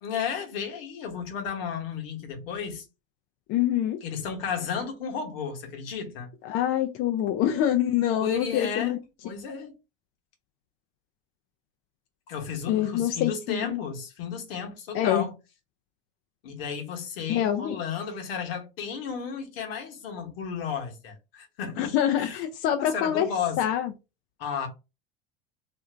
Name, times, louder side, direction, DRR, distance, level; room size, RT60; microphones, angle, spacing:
voice 1, 0.0-2.9 4.0-6.3 8.2-9.8 12.3-15.4 16.4-22.4 22.8-23.6 24.4-24.7, left 6 dB, 70° left, 1.1 m, -33 dB
voice 2, 3.5-4.0 6.4-9.0 12.7-13.8 14.9-15.3 17.3-17.8 21.8-23.3 23.6-23.9, left 11 dB, 45° left, 0.5 m, -25 dB
2.7 x 2.5 x 3.3 m
hypercardioid pair, 90°, 30 cm